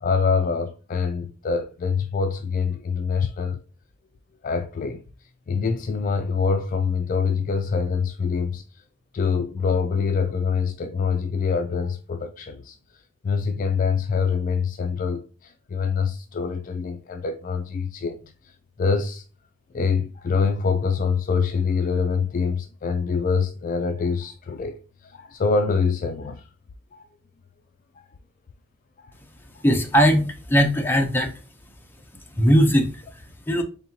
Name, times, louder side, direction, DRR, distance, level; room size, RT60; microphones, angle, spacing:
voice 1, 0.0-3.6 4.4-5.0 5.5-8.6 9.1-12.8 13.2-18.3 18.8-19.2 19.7-24.8 25.0-26.4 26.9-27.1 29.0-29.1, left 5 dB, 40° left, 0.3 m, -25 dB
voice 2, 29.6-31.3 32.1-33.6, equal, 10° left, 0.7 m, -20 dB
4.1 x 3.5 x 2.8 m
head